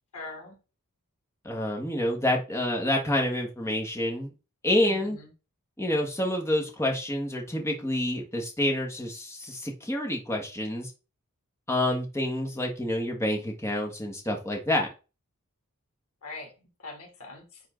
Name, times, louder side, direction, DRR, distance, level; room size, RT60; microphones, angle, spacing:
voice 1, 0.1-0.6 4.8-5.3 16.2-17.6, left 3 dB, 85° left, 1 dB, 3.0 m, -43 dB
voice 2, 1.4-4.3 4.6-5.2 5.8-10.9 11.7-14.9, left 1 dB, 10° left, 1 dB, 1.6 m, -28 dB
10.0 x 3.9 x 3.9 m, 0.31 s
head